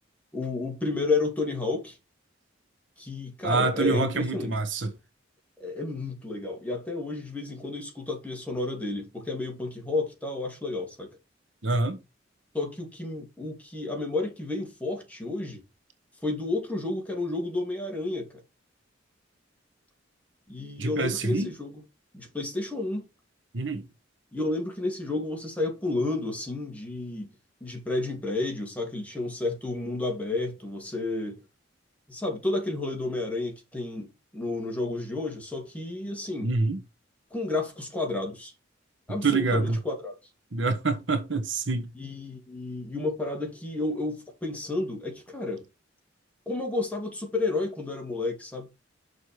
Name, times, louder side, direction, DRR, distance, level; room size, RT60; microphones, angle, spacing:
voice 1, 0.3-2.0 3.0-4.6 5.6-11.2 12.5-15.6 16.2-18.4 20.5-21.8 22.1-23.1 24.3-27.3 27.6-31.4 32.1-36.5 37.3-38.5 39.1-40.2 41.9-45.6 46.5-48.7, left 2 dB, 10° left, 2.5 m, -31 dB
voice 2, 3.4-4.9 11.6-12.0 20.8-21.5 23.5-23.9 36.4-36.8 39.2-39.8 40.5-41.9, right 3 dB, 70° right, 1.2 m, -26 dB
6.5 x 4.9 x 4.9 m
head